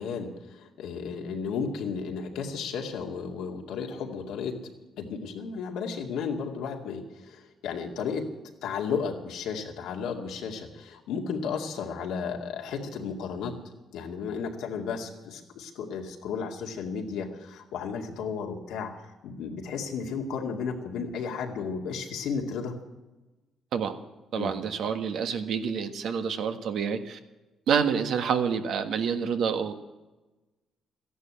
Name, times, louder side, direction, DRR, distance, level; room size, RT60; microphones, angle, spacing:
voice 1, 0.0-4.5 5.0-8.2 8.6-13.5 13.9-18.9 19.2-22.7 24.3-24.5, left 6 dB, 90° left, 2 dB, 2.3 m, -33 dB
voice 2, 24.3-27.2 27.7-29.7, right 7 dB, 75° right, 7 dB, 1.5 m, -28 dB
14.0 x 11.0 x 8.4 m, 1.1 s
cardioid pair, 90°, 0 cm